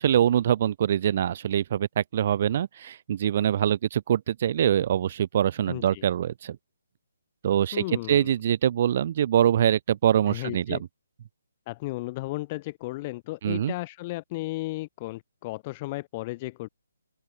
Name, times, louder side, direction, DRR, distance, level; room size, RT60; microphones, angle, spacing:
voice 1, 0.0-6.6 7.4-10.8 13.4-13.7, right 10 dB, 40° right, 0.8 m, -24 dB
voice 2, 5.7-6.0 7.7-8.3 10.2-10.8 11.7-16.7, left 20 dB, 30° left, 2.4 m, -34 dB
open air
figure-of-eight pair, 140°, 0 cm